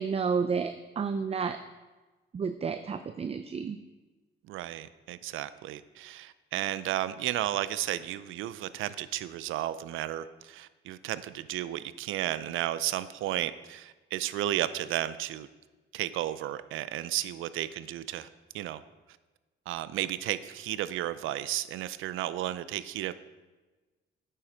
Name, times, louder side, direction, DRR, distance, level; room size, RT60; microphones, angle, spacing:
voice 1, 0.0-1.6 2.3-3.8, right 5 dB, 30° right, 9 dB, 0.5 m, -31 dB
voice 2, 4.5-15.5 15.9-18.3 18.5-18.8 19.7-23.1, right 13 dB, 85° right, 14 dB, 0.5 m, -33 dB
9.3 x 7.5 x 5.0 m, 1.2 s
cardioid pair, 90°, 20 cm